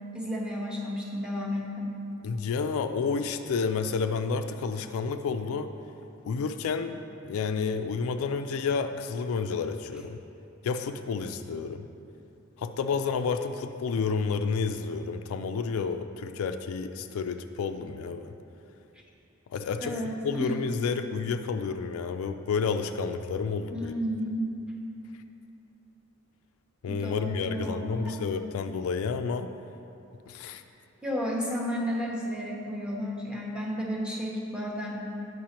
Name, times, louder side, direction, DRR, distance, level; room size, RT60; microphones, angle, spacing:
voice 1, 0.1-2.0 19.8-20.5 23.7-24.5 26.9-28.3 31.0-35.1, equal, 5° right, -2 dB, 0.7 m, -32 dB
voice 2, 2.2-5.7 6.2-10.2 10.6-11.9 12.6-18.3 19.5-23.9 26.8-29.5 30.3-30.6, left 5 dB, 75° left, 8 dB, 0.3 m, -30 dB
8.7 x 5.6 x 2.9 m, 2.8 s
head